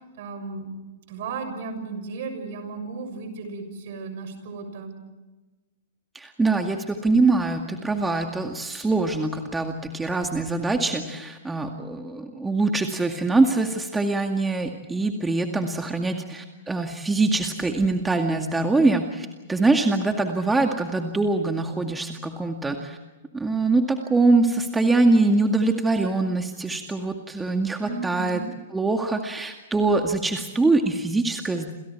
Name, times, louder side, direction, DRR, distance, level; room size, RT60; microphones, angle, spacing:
voice 1, 0.2-0.8 1.1-5.0 27.8-28.5, right 4 dB, 55° right, 8 dB, 6.7 m, -35 dB
voice 2, 6.1-23.0 23.3-28.4 28.7-31.7, right 3 dB, 10° right, 4 dB, 2.1 m, -23 dB
29.5 x 28.0 x 4.7 m, 1.2 s
figure-of-eight pair, 110°, 0 cm